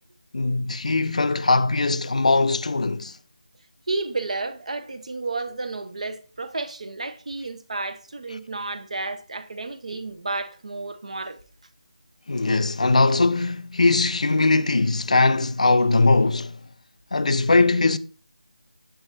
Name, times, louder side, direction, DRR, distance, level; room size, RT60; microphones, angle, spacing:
voice 1, 0.3-3.2 12.3-16.6 17.1-18.0, left 3 dB, 60° left, 0.6 m, -20 dB
voice 2, 3.9-11.4, right 3 dB, 55° right, 0.9 m, -31 dB
7.7 x 7.0 x 2.7 m
figure-of-eight pair, 165°, 4 cm